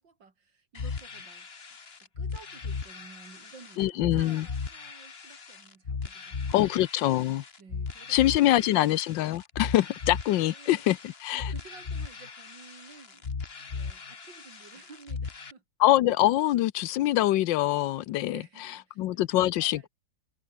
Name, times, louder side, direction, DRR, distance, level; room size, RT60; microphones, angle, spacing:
voice 1, 0.0-1.5 2.0-6.6 7.6-8.8 10.4-10.8 11.3-13.3 13.6-15.6 18.3-19.3 19.5-19.9, right 4 dB, 90° right, 3.8 m, -53 dB
sound 1, 0.7-15.5, left 5 dB, 35° left, 1.7 m, -38 dB
voice 2, 3.8-4.5 6.5-7.4 8.1-11.5 15.8-18.4 19.0-19.9, left 14 dB, 85° left, 1.4 m, -24 dB
omnidirectional pair, 1.9 m